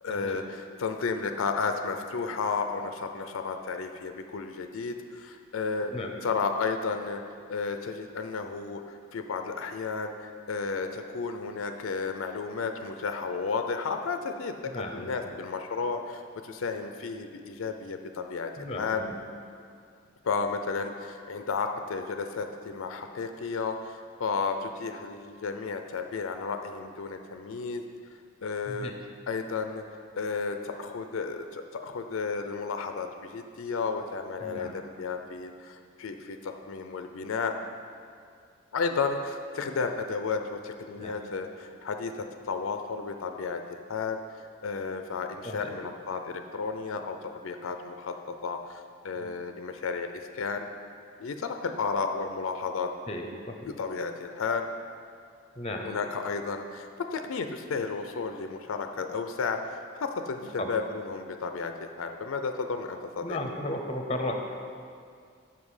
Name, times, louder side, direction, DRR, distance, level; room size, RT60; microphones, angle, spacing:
voice 1, 0.0-5.9 6.2-7.2 7.5-19.0 20.2-27.8 28.4-28.9 29.3-29.8 30.2-37.5 38.7-47.2 47.4-50.7 51.2-52.9 53.6-54.7 55.8-63.4, left 4 dB, 80° left, 6 dB, 0.4 m, -33 dB
voice 2, 14.7-15.1 18.6-19.2 28.7-28.9 34.4-34.7 41.0-41.1 45.4-45.7 49.2-49.3 53.1-53.7 55.6-55.9 60.6-60.7 63.2-64.3, left 1 dB, 30° left, 3 dB, 0.6 m, -35 dB
7.2 x 5.8 x 4.9 m, 2.3 s
head